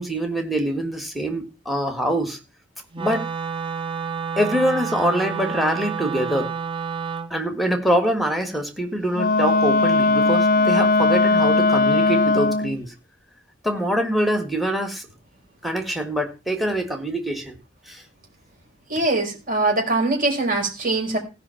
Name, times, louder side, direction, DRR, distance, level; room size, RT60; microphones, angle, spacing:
voice 1, 0.0-2.4 3.0-3.3 4.4-6.5 7.3-12.9 13.6-15.1 15.6-17.6 17.9-18.0, equal, ahead, 6 dB, 1.7 m, -24 dB
Wind instrument woodwind instrument, 2.9-7.3, right 6 dB, 25° right, 0.9 m, -29 dB
Wind instrument woodwind instrument 2, 9.1-12.8, left 3 dB, 45° left, 0.6 m, -18 dB
voice 2, 18.9-21.2, right 2 dB, 45° right, 1 dB, 4.8 m, -22 dB
16.0 x 5.6 x 5.7 m, 0.30 s
head